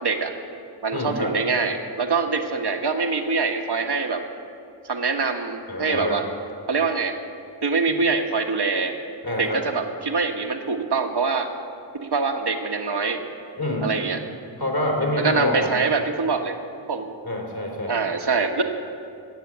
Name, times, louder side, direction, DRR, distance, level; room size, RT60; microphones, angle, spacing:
voice 1, 0.0-0.3 0.8-4.2 4.8-6.2 6.7-7.2 7.6-8.9 9.4-11.5 11.9-13.2 13.8-14.2 15.2-16.5 16.9-17.1 17.9-18.6, right 4 dB, 55° right, 5 dB, 1.4 m, -24 dB
voice 2, 0.9-1.3 5.7-6.2 9.2-9.6 13.6-13.9 14.6-15.7 17.2-17.9, left 1 dB, 50° left, -1 dB, 3.8 m, -26 dB
16.5 x 6.9 x 9.1 m, 2.5 s
cardioid pair, 40°, 47 cm